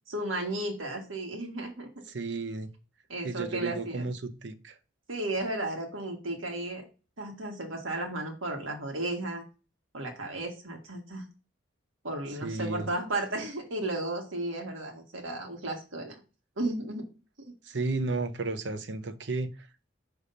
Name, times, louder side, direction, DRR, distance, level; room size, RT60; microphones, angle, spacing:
voice 1, 0.1-1.9 3.1-4.1 5.1-6.9 7.2-9.4 9.9-11.3 12.0-16.2 16.6-17.1 17.4-17.5, right 2 dB, 90° right, 1.6 m, -34 dB
voice 2, 2.1-2.7 3.2-4.8 12.4-12.9 17.6-19.5, right 3 dB, 65° right, 0.7 m, -33 dB
5.5 x 3.4 x 5.1 m
head